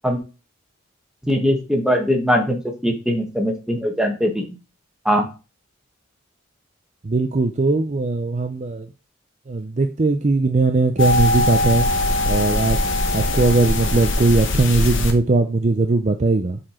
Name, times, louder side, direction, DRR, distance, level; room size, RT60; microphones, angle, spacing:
voice 1, 1.3-4.5 5.0-5.3, equal, 5° right, 2 dB, 1.3 m, -21 dB
voice 2, 7.0-8.9 9.5-11.9 12.3-12.8 13.1-16.6, right 3 dB, 35° right, 6 dB, 0.5 m, -19 dB
sound 1, 11.0-15.1, left 2 dB, 65° left, 1.1 m, -21 dB
7.4 x 4.3 x 4.4 m, 0.31 s
head